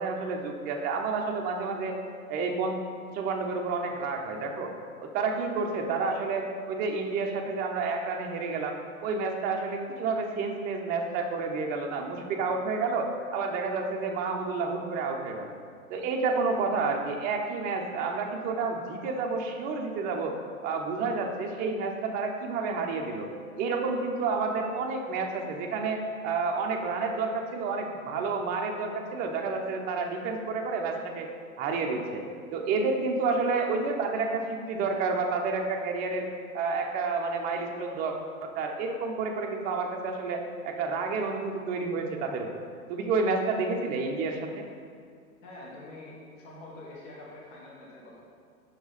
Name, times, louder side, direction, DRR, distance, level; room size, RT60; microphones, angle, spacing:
voice 1, 0.0-2.0 2.3-2.8 3.1-4.7 5.0-8.7 9.0-15.5 15.9-20.3 20.6-23.3 23.6-31.3 31.6-32.2 32.5-36.3 36.5-38.2 38.4-42.6 42.9-44.6, right 4 dB, 20° right, 2 dB, 0.5 m, -30 dB
voice 2, 45.4-48.2, left 2 dB, 55° left, -4 dB, 1.5 m, -45 dB
6.0 x 4.6 x 4.1 m, 2.2 s
figure-of-eight pair, 100°, 43 cm